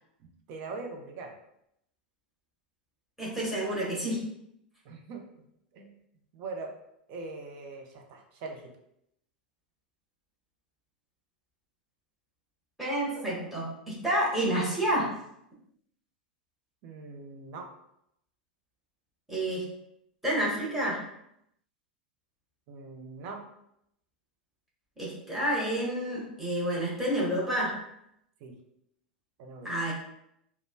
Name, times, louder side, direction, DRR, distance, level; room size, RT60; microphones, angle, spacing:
voice 1, 0.5-1.3 4.8-5.2 5.7-5.9 6.3-6.7 7.1-8.6 16.8-17.7 22.7-23.4 28.4-28.5 29.4-29.7, right 3 dB, 45° right, 2 dB, 0.7 m, -41 dB
voice 2, 3.2-4.2 12.8-15.1 19.3-19.7 20.2-21.0 25.0-27.8 29.6-29.9, right 1 dB, 5° right, -7 dB, 1.3 m, -29 dB
5.0 x 2.2 x 2.2 m, 0.77 s
figure-of-eight pair, 90°, 5 cm